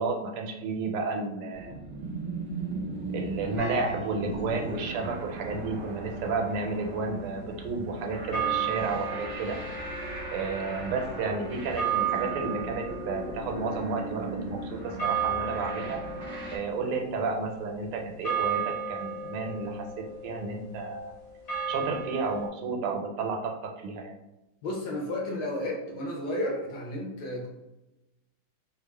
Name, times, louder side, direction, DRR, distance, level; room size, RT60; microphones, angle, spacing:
voice 1, 0.0-1.8 3.1-9.6 10.3-16.0 16.5-21.1 21.7-24.2, right 4 dB, 85° right, 2 dB, 1.5 m, -32 dB
sound 1, 1.5-16.6, right 2 dB, 60° right, 0.6 m, -38 dB
sound 2, 3.6-4.6 8.3-22.5, right 7 dB, 30° left, 0.7 m, -35 dB
voice 2, 24.6-27.5, left 1 dB, 65° left, -1 dB, 1.1 m, -32 dB
3.3 x 2.3 x 3.2 m, 0.98 s
omnidirectional pair, 2.4 m